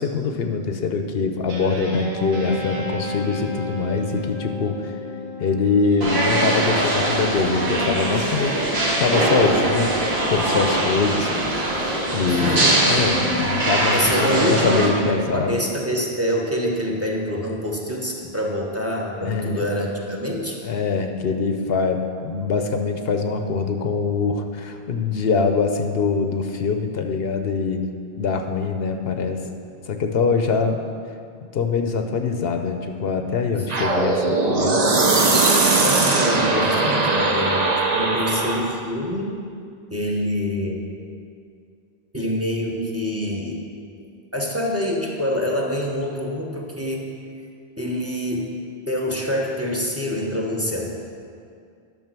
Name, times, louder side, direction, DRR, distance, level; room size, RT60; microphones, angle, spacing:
voice 1, 0.0-4.9 5.4-9.9 10.3-11.3 12.1-15.6 19.2-19.7 20.6-29.4 29.9-30.9 31.5-34.8, left 4 dB, 75° left, 6 dB, 0.9 m, -23 dB
Guitar, 1.5-6.2, equal, 70° right, 2.1 m, -31 dB
sound 1, 6.0-14.9, right 1 dB, 90° right, 2.3 m, -21 dB
voice 2, 12.3-12.8 13.9-20.6 33.5-33.8 35.8-39.4 39.9-40.9 42.1-43.6 44.3-47.1 47.8-48.5 48.9-50.9, equal, 15° right, -1 dB, 1.2 m, -26 dB
sound 2, 33.7-38.8, right 3 dB, 45° right, 0.9 m, -20 dB
11.0 x 6.1 x 6.0 m, 2.3 s
omnidirectional pair, 1.0 m